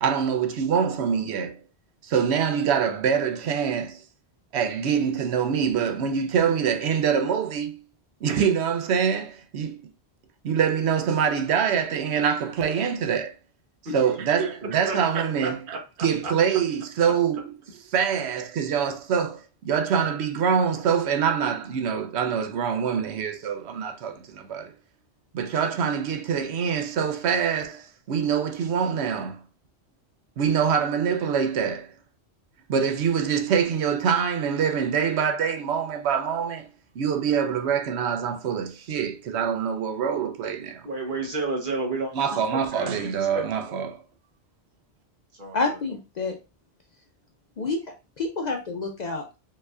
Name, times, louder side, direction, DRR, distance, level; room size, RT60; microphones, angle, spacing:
voice 1, 0.0-1.6 2.0-4.0 4.5-7.8 8.2-9.8 10.4-13.3 13.9-17.4 17.9-24.7 25.3-29.4 30.4-31.9 32.7-36.7 37.0-40.9 42.1-44.0, right 7 dB, 85° right, 0.9 m, -25 dB
voice 2, 14.4-15.0 15.4-15.5 16.0-16.3 40.8-42.1 42.7-43.7 45.4-45.6, right 3 dB, 50° right, 1.2 m, -31 dB
voice 3, 45.5-46.4 47.6-49.4, left 3 dB, 55° left, 0.5 m, -29 dB
4.6 x 3.0 x 2.4 m
omnidirectional pair, 1.1 m